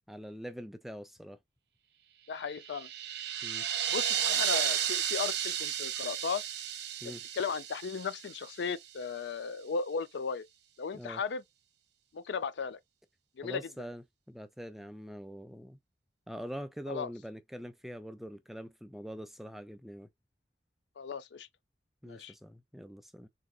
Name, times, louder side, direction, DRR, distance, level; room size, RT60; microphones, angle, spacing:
voice 1, 0.1-1.4 3.4-3.7 7.0-7.2 10.9-11.2 13.4-15.8 16.3-20.1 22.0-23.3, equal, ahead, 0.3 m, -44 dB
voice 2, 2.3-2.9 3.9-6.4 7.0-10.5 10.8-11.4 12.1-12.8 13.4-13.6 16.9-17.1 21.0-21.5 22.0-22.3, left 5 dB, 75° left, 0.4 m, -36 dB
sound 1, 2.5-8.7, right 10 dB, 70° right, 0.6 m, -33 dB
3.8 x 2.8 x 2.3 m
head